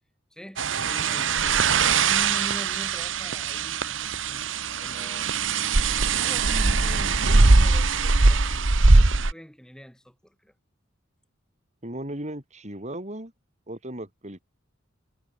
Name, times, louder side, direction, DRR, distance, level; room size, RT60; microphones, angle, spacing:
voice 1, 0.3-4.4 4.8-5.4 5.9-8.6 8.9-10.5, equal, 5° left, 6.4 m, -43 dB
sound 1, 0.6-9.3, right 3 dB, 70° right, 1.4 m, -21 dB
voice 2, 11.8-13.3 13.7-14.4, right 1 dB, 35° right, 5.8 m, -36 dB
head